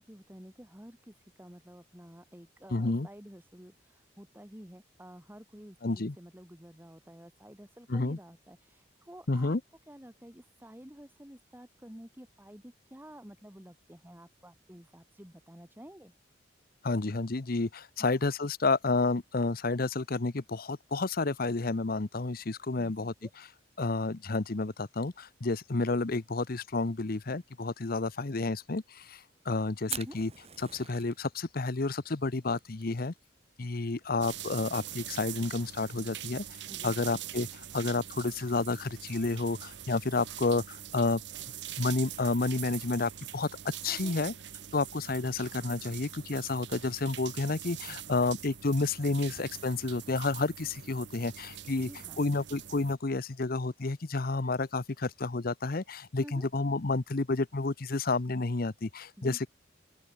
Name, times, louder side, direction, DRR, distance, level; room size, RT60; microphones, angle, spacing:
voice 1, 0.0-9.6 9.9-16.1 18.0-18.1 22.7-22.9 23.2-23.3 29.9-30.2 36.7-37.1 43.9-44.2 51.8-52.2 56.2-56.5 59.2-59.5, equal, 10° right, 2.5 m, -51 dB
voice 2, 2.7-3.1 5.8-6.2 7.9-8.2 9.3-9.6 16.8-23.1 23.8-30.3 30.7-33.1 33.6-36.4 36.8-41.2 41.8-44.3 44.7-51.9 52.2-59.5, left 3 dB, 50° left, 0.8 m, -30 dB
Fire, 29.9-39.6, right 9 dB, 35° right, 3.2 m, -48 dB
sound 1, 34.2-53.0, right 11 dB, 65° right, 1.1 m, -43 dB
open air
head